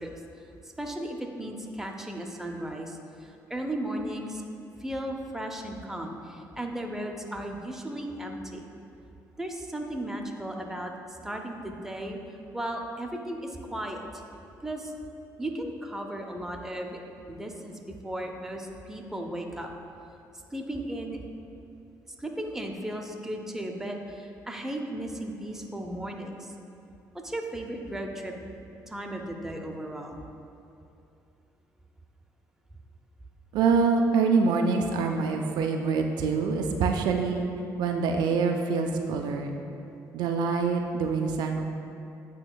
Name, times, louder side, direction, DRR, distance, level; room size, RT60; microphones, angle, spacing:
voice 1, 0.0-4.4 4.8-8.7 9.4-12.2 12.5-14.0 14.6-14.9 15.4-17.0 17.3-19.7 20.5-21.2 22.1-26.5 27.1-28.3 28.9-30.2, right 1 dB, 5° right, 2 dB, 0.5 m, -36 dB
voice 2, 33.5-37.4 37.8-39.6 40.1-41.6, right 5 dB, 75° right, 3 dB, 0.3 m, -25 dB
8.3 x 2.8 x 2.2 m, 2.8 s
supercardioid pair, 70°, 7 cm